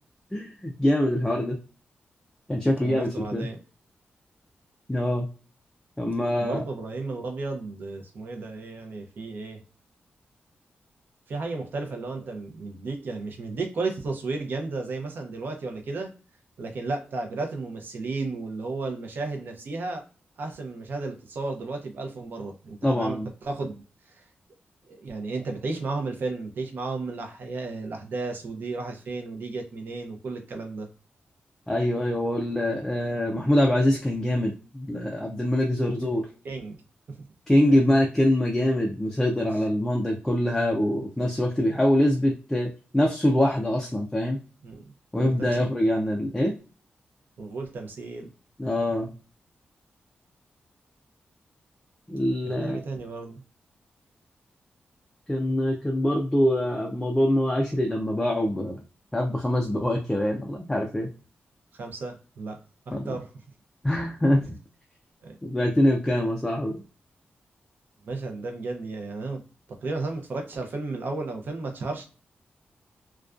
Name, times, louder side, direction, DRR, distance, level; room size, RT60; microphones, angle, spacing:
voice 1, 0.3-1.6 2.5-3.5 4.9-5.3 6.0-6.6 22.8-23.3 31.7-36.3 37.5-44.4 45.1-46.6 48.6-49.1 52.1-52.8 55.3-58.8 59.1-61.1 62.9-63.1 63.8-64.5 65.4-66.8, left 1 dB, 10° left, 0 dB, 0.3 m, -24 dB
voice 2, 2.7-3.6 6.4-9.6 11.3-16.1 16.6-20.0 20.4-23.8 24.1-24.2 24.9-30.9 36.4-36.8 37.1-37.3 37.6-37.8 44.6-45.7 47.4-48.3 52.4-53.4 61.7-62.6 62.9-63.3 65.2-65.4 68.1-69.4 69.7-72.0, right 3 dB, 60° right, 3 dB, 0.6 m, -33 dB
2.4 x 2.2 x 2.4 m, 0.35 s
wide cardioid pair, 170°, 4 cm